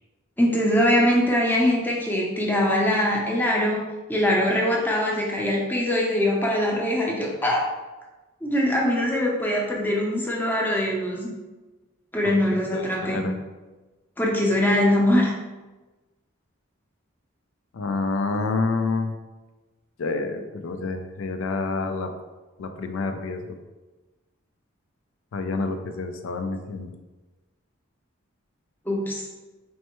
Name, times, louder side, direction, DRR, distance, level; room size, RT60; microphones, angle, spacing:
voice 1, 0.4-3.8 4.1-7.6 8.4-11.3 12.1-13.3 14.2-15.3 28.9-29.3, left 1 dB, 10° left, -3 dB, 0.6 m, -22 dB
voice 2, 12.7-13.4 17.7-19.1 20.0-22.1 22.6-23.6 25.3-26.9, left 3 dB, 75° left, 7 dB, 0.4 m, -28 dB
4.3 x 3.2 x 3.0 m, 1.2 s
head